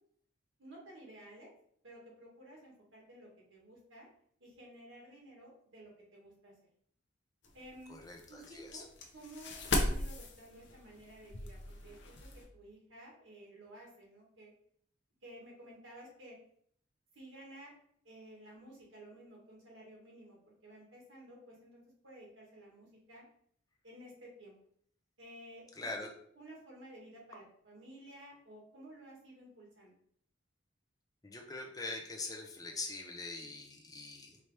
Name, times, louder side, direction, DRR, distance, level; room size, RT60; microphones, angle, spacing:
voice 1, 0.6-1.5 1.8-4.1 4.4-6.5 7.5-8.0 8.3-8.9 9.1-12.1 12.5-14.5 15.2-16.4 17.1-17.7 18.0-23.3 23.8-24.6 25.2-25.6 26.0-26.1 26.4-29.9, right 1 dB, 85° right, -3 dB, 1.7 m, -54 dB
sound 1, 7.4-12.4, left 1 dB, 60° left, 0.7 m, -38 dB
voice 2, 7.9-8.9 25.8-26.1 31.2-34.4, left 3 dB, 20° left, 2 dB, 0.6 m, -43 dB
4.7 x 2.8 x 3.3 m, 0.64 s
head